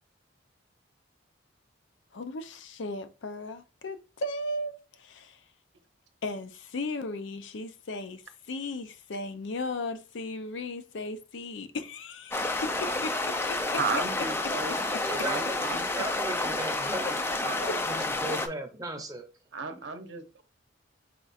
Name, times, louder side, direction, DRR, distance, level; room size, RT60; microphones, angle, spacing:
voice 1, 2.1-5.4 6.2-13.6 14.7-15.0 17.6-18.1, left 2 dB, 70° left, 0.5 m, -36 dB
sound 1, 12.3-18.5, left 2 dB, 10° left, 0.3 m, -30 dB
voice 2, 13.8-14.7 15.2-15.9 17.4-17.6 19.5-20.4, right 4 dB, 65° right, 0.7 m, -34 dB
voice 3, 15.0-17.2 17.6-19.2, right 2 dB, 20° right, 0.7 m, -37 dB
4.4 x 2.4 x 4.0 m
head